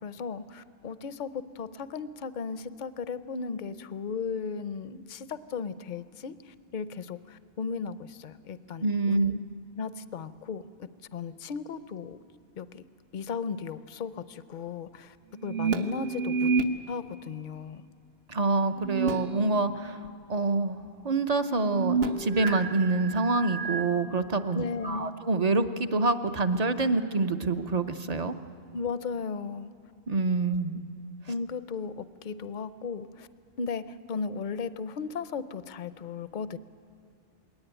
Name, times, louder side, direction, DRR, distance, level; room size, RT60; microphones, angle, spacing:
voice 1, 0.0-9.4 9.7-12.2 12.6-12.8 13.1-15.2 15.4-16.5 16.9-17.8 24.5-25.1 28.7-29.7 30.7-30.8 31.3-33.3 33.6-36.6, left 5 dB, 55° left, 14 dB, 0.7 m, -36 dB
voice 2, 8.8-9.3 18.3-20.0 20.3-20.8 21.0-28.3 30.1-30.8, right 3 dB, 40° right, 8 dB, 0.8 m, -26 dB
sound 1, 15.4-16.7 18.8-19.7 20.1-20.2 21.6-23.9, right 4 dB, 70° right, 1.2 m, -29 dB
21.0 x 18.0 x 9.0 m, 2.3 s
omnidirectional pair, 1.1 m